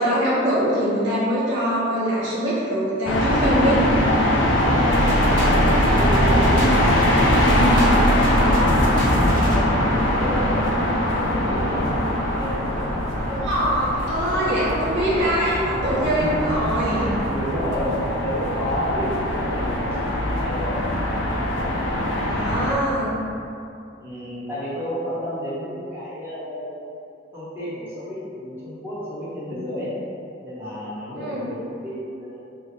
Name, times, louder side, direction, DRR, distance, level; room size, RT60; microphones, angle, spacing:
voice 1, 0.0-3.8 6.8-7.0 13.3-17.1 22.3-23.1 31.1-31.5, equal, 70° right, -9 dB, 1.2 m, -23 dB
sound 1, 3.1-22.7, left 1 dB, 70° left, 0.5 m, -22 dB
voice 2, 4.7-5.3 5.8-12.0 12.4-12.9 16.0-16.5 16.9-20.8 21.5-21.9 24.0-26.9 27.3-29.9 30.4-32.4, equal, 10° right, -12 dB, 0.9 m, -31 dB
sound 2, 4.9-17.3, equal, 45° right, 0.5 m, -26 dB
3.5 x 2.0 x 3.8 m, 2.5 s
head